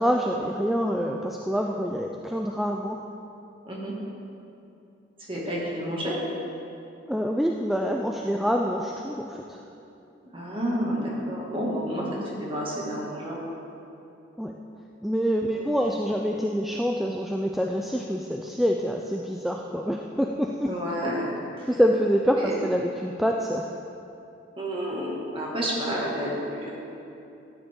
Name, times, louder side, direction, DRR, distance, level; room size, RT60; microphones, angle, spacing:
voice 1, 0.0-3.0 7.1-9.6 14.4-14.5 15.0-20.8 21.7-23.7, equal, ahead, 0 dB, 0.3 m, -26 dB
voice 2, 5.3-6.1 10.3-13.4 15.5-15.6 20.7-21.3 21.6-21.7 22.4-22.5 24.6-26.7, equal, 25° right, -4 dB, 2.0 m, -30 dB
13.5 x 9.6 x 3.7 m, 2.8 s
head